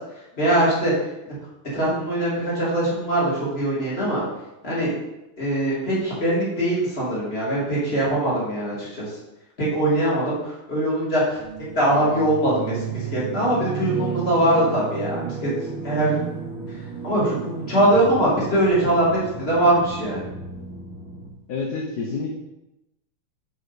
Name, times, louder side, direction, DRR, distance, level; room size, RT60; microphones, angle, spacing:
voice 1, 0.4-0.9 1.7-4.2 4.6-4.9 5.4-9.0 9.6-11.4 11.7-15.5 15.8-16.2 17.0-20.2, right 1 dB, 30° left, -7 dB, 2.7 m, -22 dB
sound 1, 11.3-21.3, right 5 dB, 25° right, 0.4 m, -33 dB
voice 2, 21.5-22.3, left 4 dB, 60° left, -1 dB, 1.2 m, -28 dB
6.7 x 5.3 x 4.1 m, 0.93 s
omnidirectional pair, 2.4 m